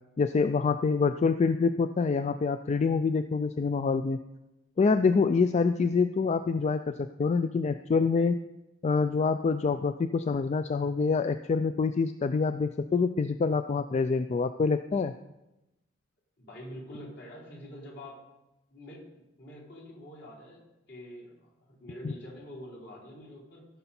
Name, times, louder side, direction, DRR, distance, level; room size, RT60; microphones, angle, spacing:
voice 1, 0.2-4.2 4.8-8.4 8.8-15.1 22.0-22.1, left 4 dB, 35° left, 10 dB, 0.3 m, -26 dB
voice 2, 16.4-18.2 18.7-23.7, equal, 60° left, -5 dB, 4.3 m, -46 dB
15.0 x 6.8 x 4.3 m, 0.96 s
head